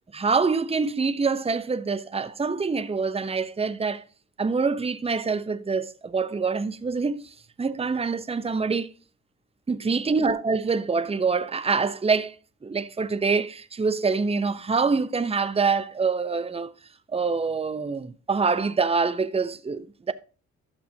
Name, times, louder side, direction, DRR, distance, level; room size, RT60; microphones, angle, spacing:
voice 1, 0.1-4.0 4.4-8.9 9.7-12.4 12.6-16.7 17.1-20.1, right 4 dB, 20° right, 0.8 m, -25 dB
12.0 x 7.3 x 2.8 m
cardioid pair, 80°, 29 cm